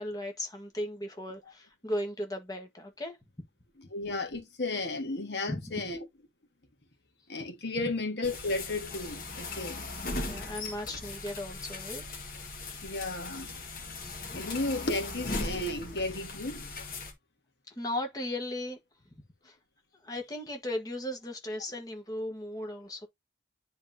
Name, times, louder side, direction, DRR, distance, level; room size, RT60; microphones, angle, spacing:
voice 1, 0.0-3.2 5.5-5.7 10.2-12.0 14.0-14.3 17.7-18.8 19.4-19.6 20.0-23.1, left 1 dB, 20° left, 1.5 m, -36 dB
voice 2, 3.9-6.1 7.3-9.8 12.8-13.6 14.3-16.7, left 2 dB, 70° left, 1.8 m, -34 dB
sound 1, 8.2-17.1, left 3 dB, 50° left, 1.7 m, -39 dB
10.0 x 3.7 x 2.8 m
head